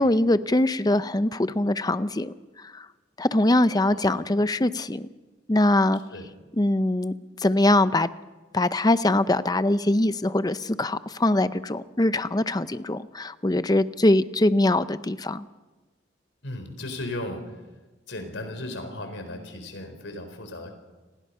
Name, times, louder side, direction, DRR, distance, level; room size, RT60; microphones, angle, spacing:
voice 1, 0.0-2.3 3.2-5.1 5.5-6.0 6.6-7.1 7.4-8.1 8.5-15.4, left 1 dB, 20° left, 13 dB, 0.6 m, -22 dB
voice 2, 3.8-4.2 6.1-6.3 16.4-17.4 18.1-20.8, left 1 dB, 80° left, 7 dB, 4.3 m, -36 dB
29.0 x 20.0 x 5.6 m, 1.2 s
head